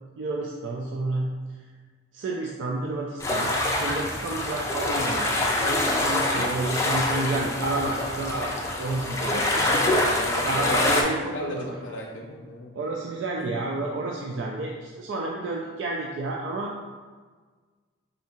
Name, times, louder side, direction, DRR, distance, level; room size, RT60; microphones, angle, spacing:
voice 1, 0.2-1.3 2.1-3.5 3.8-8.5 8.8-9.5 10.4-11.7 12.8-16.7, right 2 dB, 75° right, -1 dB, 0.4 m, -30 dB
sound 1, 3.2-11.0, left 1 dB, 15° left, 0.4 m, -25 dB
voice 2, 9.6-12.7 13.4-13.5, left 1 dB, 75° left, -2 dB, 0.6 m, -34 dB
3.6 x 2.7 x 4.2 m, 1.4 s
head